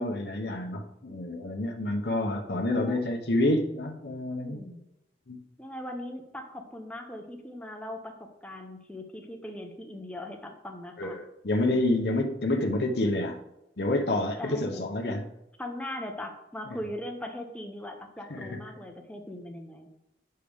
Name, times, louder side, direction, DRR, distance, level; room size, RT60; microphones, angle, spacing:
voice 1, 0.0-4.6 5.3-5.4 11.0-13.4 13.8-15.3 18.3-18.5, left 1 dB, 65° left, 2 dB, 0.8 m, -28 dB
voice 2, 2.4-3.0 4.3-4.8 5.6-11.2 14.4-14.9 15.6-19.9, left 1 dB, 5° left, 3 dB, 0.8 m, -40 dB
8.5 x 6.6 x 3.4 m, 0.87 s
head